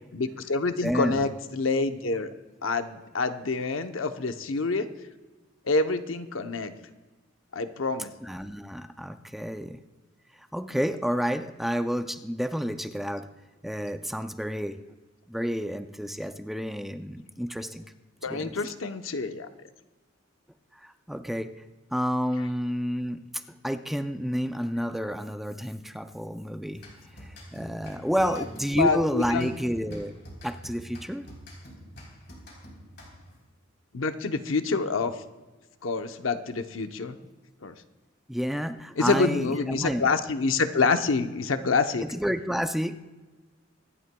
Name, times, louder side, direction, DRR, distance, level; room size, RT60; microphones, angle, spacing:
voice 1, 0.1-2.3 2.6-4.9 5.7-6.7 7.5-8.1 18.2-19.5 28.8-29.5 33.9-35.1 35.8-37.2 37.6-37.7 39.0-42.1, left 4 dB, 75° left, 8 dB, 0.8 m, -27 dB
voice 2, 0.8-1.3 8.2-9.8 10.4-13.3 13.6-14.8 15.3-17.9 18.3-18.6 20.7-21.5 21.9-26.8 27.2-30.2 30.4-31.3 38.3-40.1 42.0-43.0, equal, ahead, 8 dB, 0.4 m, -30 dB
sound 1, 26.8-33.4, equal, 60° left, 3.7 m, -46 dB
25.0 x 11.0 x 2.3 m, 1.2 s
head